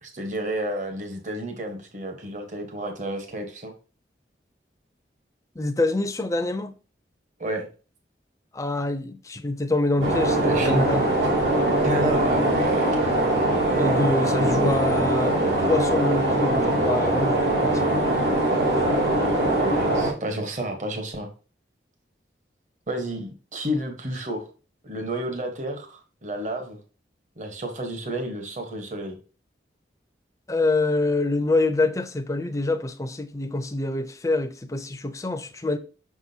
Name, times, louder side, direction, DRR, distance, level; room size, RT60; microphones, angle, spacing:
voice 1, 0.0-3.7 7.4-7.7 10.4-10.9 11.8-13.0 14.3-14.7 18.5-19.1 19.6-21.3 22.9-24.5 24.8-26.8 27.4-29.2, right 1 dB, 45° right, 1.2 m, -30 dB
voice 2, 5.6-6.7 8.5-11.0 13.7-18.0 30.5-35.8, left 2 dB, 15° left, 0.5 m, -26 dB
sound 1, 10.0-20.1, right 1 dB, 80° right, 2.5 m, -22 dB
6.1 x 6.0 x 2.8 m
head